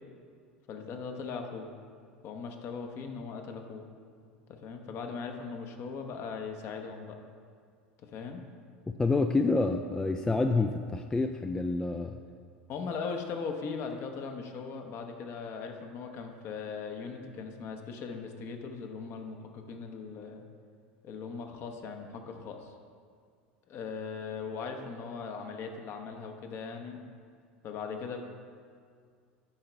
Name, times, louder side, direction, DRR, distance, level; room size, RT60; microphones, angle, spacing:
voice 1, 0.7-1.7 2.2-3.8 4.5-7.2 8.0-8.4 12.7-20.4 21.0-22.7 23.7-27.0 27.6-28.2, left 5 dB, 45° left, 4 dB, 0.9 m, -39 dB
voice 2, 8.9-12.2, left 3 dB, 10° left, 6 dB, 0.3 m, -28 dB
10.0 x 3.9 x 4.5 m, 2.1 s
hypercardioid pair, 85°, 6 cm